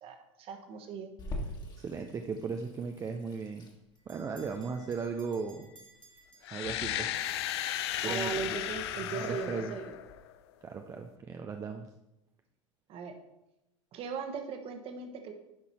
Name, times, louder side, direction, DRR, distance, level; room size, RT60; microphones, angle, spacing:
voice 1, 0.0-1.1 8.0-9.9 12.9-13.1 13.9-15.3, right 6 dB, 35° right, 6 dB, 1.3 m, -38 dB
Water tap faucet / Sink (filling or washing), 1.2-10.2, left 1 dB, 25° left, 1.7 m, -46 dB
voice 2, 1.8-3.7 4.1-5.7 6.5-7.1 8.0-8.8 9.1-9.8 10.6-11.9, right 5 dB, 20° right, 5 dB, 0.6 m, -37 dB
Bell, 3.9-7.2, right 2 dB, 85° right, 1.2 m, -60 dB
sound 1, 6.4-10.4, left 12 dB, 55° left, 0.6 m, -35 dB
10.5 x 5.6 x 4.2 m, 0.91 s
figure-of-eight pair, 85°, 16 cm